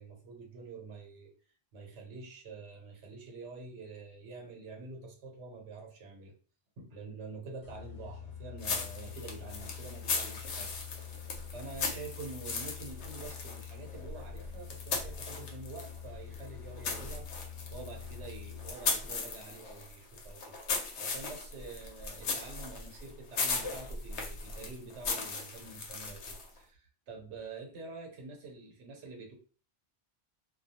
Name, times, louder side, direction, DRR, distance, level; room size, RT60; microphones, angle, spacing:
voice 1, 0.0-1.3 1.7-6.3 6.8-20.6 21.0-29.3, right 3 dB, 90° right, 2 dB, 1.1 m, -47 dB
sound 1, 7.6-19.0, left 9 dB, 50° left, 0.7 m, -46 dB
sound 2, 8.6-16.0 16.3-26.6, left 4 dB, 85° left, 1.0 m, -38 dB
2.3 x 2.2 x 2.7 m, 0.39 s
omnidirectional pair, 1.1 m